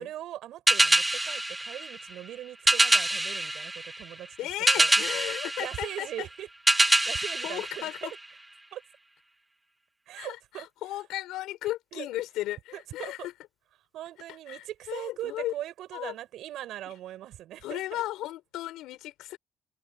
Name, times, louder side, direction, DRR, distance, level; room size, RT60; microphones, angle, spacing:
voice 1, 0.0-4.4 4.8-4.9 5.6-6.5 6.8-8.2 8.7-8.8 10.1-10.7 11.9-12.1 12.7-13.3 13.9-18.0, right 13 dB, 65° right, 5.8 m, -40 dB
sound 1, 0.7-8.5, right 1 dB, 5° right, 1.2 m, -26 dB
voice 2, 4.4-6.1 7.4-8.1 10.2-13.3 14.5-15.5 15.9-16.1 17.6-19.4, left 15 dB, 85° left, 4.4 m, -35 dB
cardioid pair, 165°, 0 cm